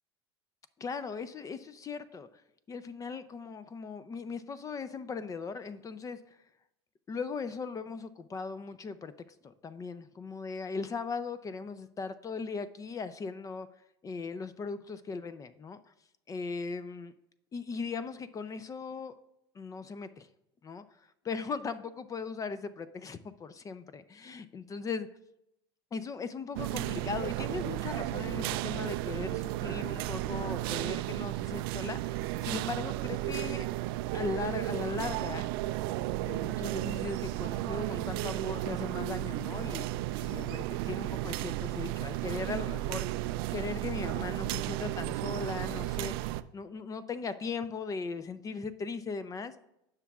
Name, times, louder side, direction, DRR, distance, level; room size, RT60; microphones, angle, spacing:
voice 1, 0.8-2.3 2.7-6.2 7.1-9.1 9.4-13.7 14.0-15.8 16.3-17.1 17.5-19.1 19.5-20.3 20.6-20.8 21.2-25.1 25.9-33.7 34.1-35.5 36.3-43.1 43.5-46.1 46.5-49.5, left 4 dB, 25° left, 0.6 m, -38 dB
sound 1, 26.6-46.4, right 16 dB, 65° right, 0.4 m, -34 dB
16.0 x 6.0 x 2.4 m
hypercardioid pair, 85°, 13 cm